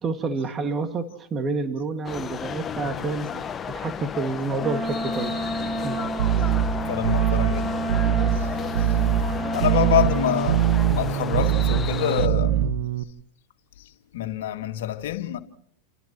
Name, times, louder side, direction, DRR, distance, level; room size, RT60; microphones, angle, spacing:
voice 1, 0.0-3.3 3.6-6.0, right 3 dB, 25° right, 1.9 m, -29 dB
sound 1, 2.0-12.3, left 7 dB, 25° left, 1.1 m, -34 dB
Wind instrument woodwind instrument, 4.6-10.7, right 1 dB, 5° right, 3.6 m, -31 dB
sound 2, 6.2-13.0, right 10 dB, 70° right, 1.2 m, -23 dB
voice 2, 6.8-7.7 8.3-8.5 8.8-9.0 9.5-12.6 13.8-15.4, left 11 dB, 75° left, 2.2 m, -27 dB
30.0 x 29.0 x 3.0 m
hypercardioid pair, 115°, 0 cm